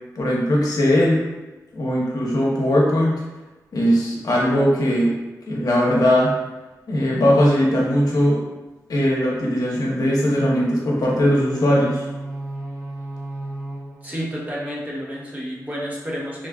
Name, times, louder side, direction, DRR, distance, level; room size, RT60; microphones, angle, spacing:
voice 1, 0.1-1.3 1.7-3.2 3.7-5.2 5.5-6.3 6.9-8.4 8.9-12.0, equal, 65° left, -4 dB, 0.8 m, -19 dB
sound 1, 11.3-15.4, right 1 dB, 85° right, 1.4 m, -35 dB
voice 2, 14.0-16.5, equal, 25° right, -5 dB, 0.8 m, -30 dB
3.9 x 2.3 x 2.3 m, 1.1 s
cardioid pair, 60°, 7 cm